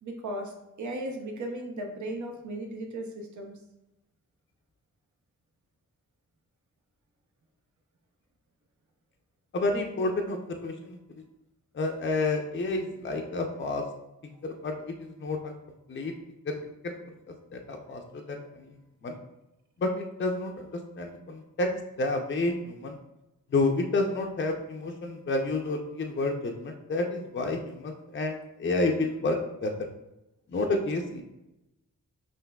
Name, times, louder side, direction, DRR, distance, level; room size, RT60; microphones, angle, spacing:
voice 1, 0.0-3.5, right 1 dB, 55° right, 2 dB, 0.7 m, -36 dB
voice 2, 9.5-11.0 11.7-13.8 14.4-14.7 15.0-15.5 15.9-16.1 16.5-16.6 16.8-17.0 17.5-18.4 19.0-19.1 19.8-20.5 21.0-21.7 22.0-23.0 23.5-29.7 30.5-31.2, left 2 dB, 35° left, 2 dB, 0.5 m, -29 dB
5.7 x 2.5 x 2.2 m, 0.91 s
cardioid pair, 50°, 34 cm